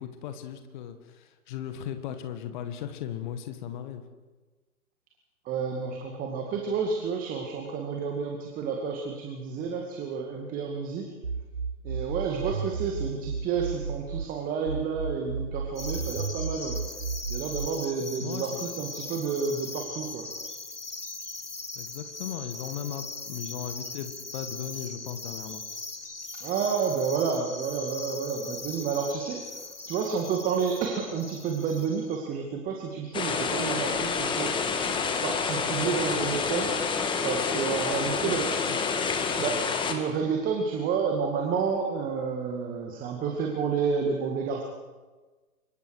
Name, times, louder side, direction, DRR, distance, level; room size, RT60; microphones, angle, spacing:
voice 1, 0.0-4.0 18.2-18.7 21.8-25.6 37.9-38.4 38.7-38.8, left 9 dB, 30° left, 8 dB, 1.8 m, -37 dB
voice 2, 5.5-11.1 11.8-16.8 17.3-20.3 26.3-29.4 29.9-34.5 35.2-36.7 37.2-38.5 39.4-39.6 39.9-44.6, right 6 dB, 20° right, 2 dB, 2.2 m, -30 dB
sound 1, 11.2-14.3 14.7-17.7, right 5 dB, 85° right, 1.1 m, -33 dB
sound 2, 15.8-32.2, left 3 dB, 85° left, 1.8 m, -40 dB
sound 3, 33.1-39.9, left 5 dB, 10° left, 1.8 m, -28 dB
25.5 x 23.5 x 4.9 m, 1.3 s
figure-of-eight pair, 120°, 45 cm